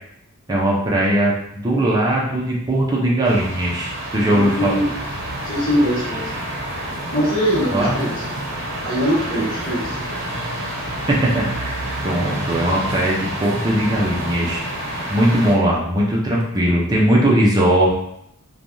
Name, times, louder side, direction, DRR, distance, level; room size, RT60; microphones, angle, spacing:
voice 1, 0.5-4.8 7.7-7.9 11.1-11.7 12.0-14.6 15.1-17.9, right 1 dB, 20° right, -4 dB, 0.5 m, -19 dB
sound 1, 3.2-15.5, right 1 dB, 60° right, 0.7 m, -28 dB
voice 2, 4.2-4.9 5.4-6.3 7.1-8.1 8.8-10.0, equal, 40° left, -9 dB, 1.2 m, -22 dB
3.2 x 2.3 x 2.6 m, 0.74 s
head